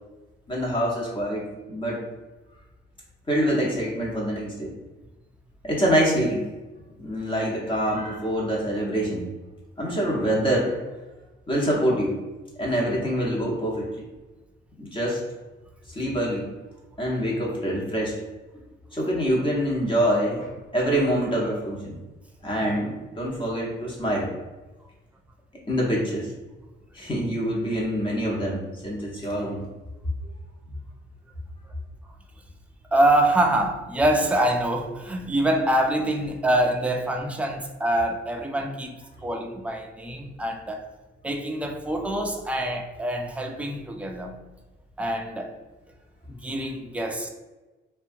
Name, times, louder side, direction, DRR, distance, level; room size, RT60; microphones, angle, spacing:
voice 1, 0.5-2.0 3.3-4.7 5.6-6.4 7.0-9.2 9.8-10.8 11.5-12.1 12.6-14.0 14.8-15.2 15.9-16.5 17.0-18.1 18.9-22.0 22.4-24.3 25.7-26.3 26.9-29.6, equal, 25° left, -4 dB, 0.8 m, -25 dB
voice 2, 32.9-38.9 39.2-40.8 41.2-44.3 45.0-45.5 46.3-47.3, right 1 dB, 5° right, 3 dB, 0.3 m, -25 dB
2.7 x 2.2 x 2.6 m, 1.1 s
cardioid pair, 90°, 20 cm